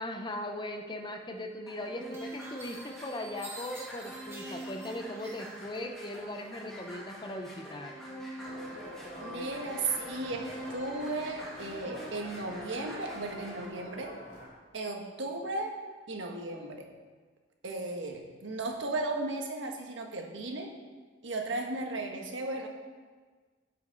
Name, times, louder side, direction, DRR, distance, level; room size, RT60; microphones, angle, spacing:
voice 1, 0.0-7.9, left 1 dB, 25° left, 4 dB, 0.8 m, -39 dB
sound 1, 1.4-1.5 2.1-5.8 6.1-6.9, right 1 dB, 15° right, 2.3 m, -49 dB
sound 2, 1.7-13.6, equal, ahead, 2.4 m, -45 dB
sound 3, 8.4-14.5, left 1 dB, 45° left, 2.8 m, -45 dB
voice 2, 9.2-14.1 14.7-15.7 16.1-16.9 17.6-20.7 21.2-22.7, right 2 dB, 80° right, 2 dB, 1.4 m, -35 dB
15.5 x 5.8 x 4.0 m, 1.4 s
head